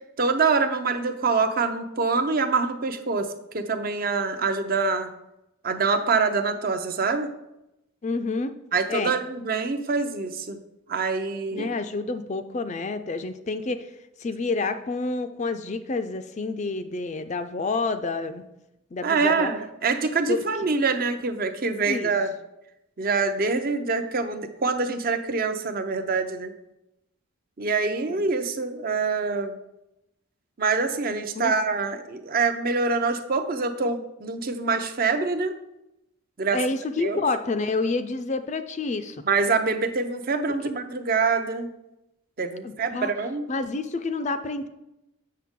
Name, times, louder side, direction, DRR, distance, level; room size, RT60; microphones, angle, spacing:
voice 1, 0.2-5.1 5.6-7.3 8.7-10.6 10.9-11.7 19.0-22.3 23.0-26.5 27.6-29.6 30.6-35.5 36.4-36.6 37.0-37.2 39.3-41.7 42.4-43.5, right 4 dB, 45° right, 8 dB, 0.6 m, -25 dB
voice 2, 8.0-8.5 8.9-9.1 11.5-13.9 14.2-18.4 18.9-19.5 20.3-20.4 21.9-22.1 31.3-31.5 36.5-39.2 42.6-43.1 43.5-44.7, left 3 dB, 35° left, 10 dB, 0.4 m, -28 dB
7.5 x 6.2 x 3.6 m, 0.89 s
head